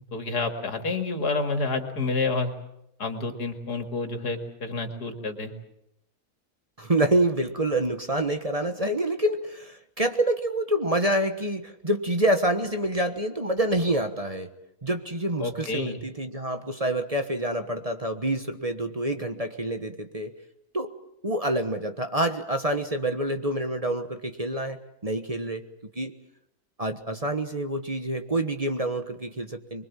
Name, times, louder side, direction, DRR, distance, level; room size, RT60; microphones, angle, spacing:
voice 1, 0.1-2.5 3.0-5.5 15.4-16.0, left 3 dB, 90° left, 5 dB, 2.9 m, -29 dB
voice 2, 6.8-14.5 14.8-20.3 20.7-20.9 21.2-25.7 25.9-26.1 26.8-29.9, right 1 dB, 25° right, 7 dB, 1.3 m, -27 dB
25.0 x 23.0 x 7.5 m, 0.82 s
omnidirectional pair, 1.6 m